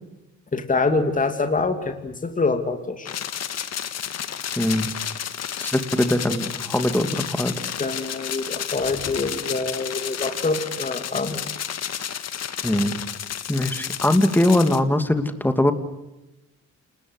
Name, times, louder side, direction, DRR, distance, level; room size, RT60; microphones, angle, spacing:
voice 1, 0.5-3.1 7.8-11.4, left 3 dB, 25° left, 6 dB, 2.8 m, -25 dB
sound 1, 3.1-14.8, left 9 dB, 60° left, 1.8 m, -31 dB
voice 2, 4.6-4.9 5.6-7.5 12.6-13.0 13.5-15.7, left 1 dB, 5° left, 8 dB, 2.7 m, -21 dB
28.5 x 19.5 x 8.2 m, 0.94 s
cardioid pair, 90°, 30 cm